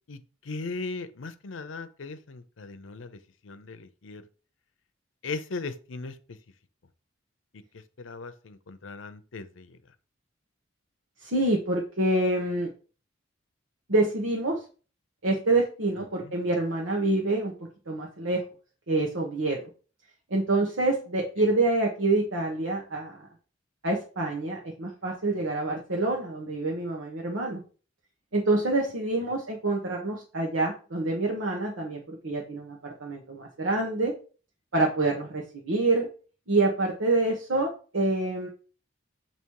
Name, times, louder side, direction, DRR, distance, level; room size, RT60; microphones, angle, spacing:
voice 1, 0.1-4.3 5.2-6.4 7.5-9.8 16.0-16.3, left 3 dB, 75° left, 11 dB, 0.7 m, -38 dB
voice 2, 11.2-12.7 13.9-14.6 15.2-17.5 17.9-18.4 18.9-19.6 20.3-23.2 23.8-27.6 28.3-34.1 34.7-36.1 36.5-38.5, right 2 dB, 90° right, -1 dB, 1.2 m, -26 dB
7.2 x 3.0 x 4.7 m, 0.37 s
head